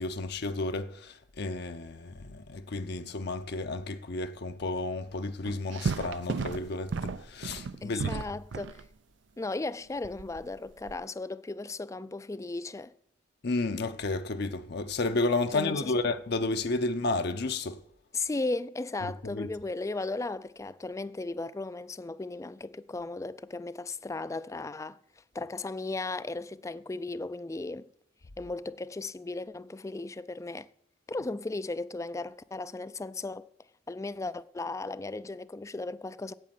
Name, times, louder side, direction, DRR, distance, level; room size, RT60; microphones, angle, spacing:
voice 1, 0.0-8.2 13.4-17.8 19.0-19.5, left 3 dB, 60° left, 0.7 m, -32 dB
sound 1, 5.5-8.9 10.0-11.0, right 4 dB, 75° right, 0.5 m, -34 dB
voice 2, 7.8-8.8 9.4-12.9 15.5-16.0 18.1-25.0 25.3-27.9 28.4-30.7 31.1-33.4 33.9-36.3, left 3 dB, 15° left, 0.4 m, -36 dB
9.2 x 8.4 x 7.7 m
head